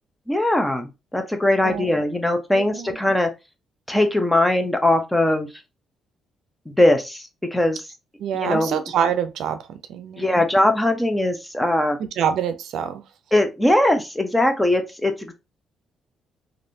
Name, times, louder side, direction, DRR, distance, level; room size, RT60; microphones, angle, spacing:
voice 1, 0.3-3.3 3.9-5.5 6.7-7.2 7.5-7.8 8.3-8.8 10.2-12.0 13.3-15.3, left 1 dB, 10° left, 0.7 m, -20 dB
voice 2, 2.5-3.0 8.2-10.4 12.0-13.0, right 8 dB, 75° right, 0.5 m, -26 dB
3.2 x 2.6 x 2.7 m
cardioid pair, 90°, 0 cm